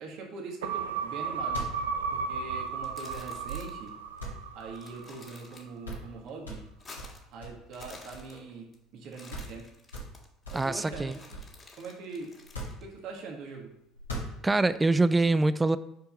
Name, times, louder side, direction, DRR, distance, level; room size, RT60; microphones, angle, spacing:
voice 1, 0.0-1.6 2.1-3.9 4.5-6.6 7.3-8.7 8.9-9.6 10.5-11.4 11.8-12.3 12.8-13.7, right 4 dB, 55° right, 1 dB, 1.8 m, -42 dB
sound 1, 0.6-5.3 5.7-5.8, right 5 dB, 75° right, 0.4 m, -34 dB
sound 2, 1.5-3.6 4.2-5.2 5.5-5.6 5.8-6.1 6.4-8.6 8.9-9.0 9.3-9.6 9.9-11.6 12.4-13.4 13.9-14.8, right 1 dB, 90° left, 2.3 m, -41 dB
sound 3, 2.7-3.9 4.2-4.3 4.6-6.0 6.3-7.3 7.6-8.8 9.0-12.8, left 3 dB, 30° left, 1.9 m, -51 dB
voice 2, 10.5-11.2 14.4-15.8, right 2 dB, 15° right, 15 dB, 0.5 m, -24 dB
6.6 x 4.5 x 5.1 m, 0.78 s
hypercardioid pair, 65°, 0 cm